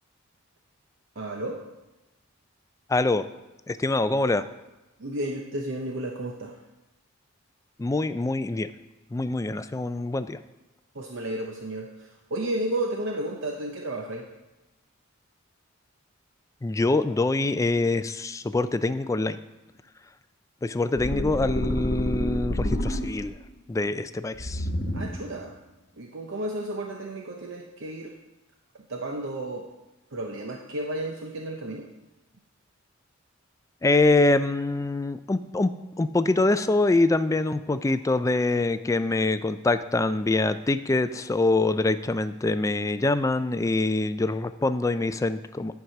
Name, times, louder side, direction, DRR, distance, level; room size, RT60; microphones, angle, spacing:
voice 1, 1.2-1.6 5.0-6.6 10.9-14.3 24.9-25.5 26.0-28.2 28.9-29.7 30.1-31.8, right 1 dB, 65° right, 1 dB, 0.8 m, -32 dB
voice 2, 2.9-3.2 3.7-4.4 7.8-8.7 9.1-10.4 16.6-19.4 20.6-23.3 23.7-24.7 33.8-45.7, left 2 dB, 15° left, 12 dB, 0.3 m, -24 dB
sound 1, 21.0-23.4 24.4-25.4, equal, 50° left, 1.1 m, -29 dB
10.5 x 4.8 x 5.8 m, 1.0 s
head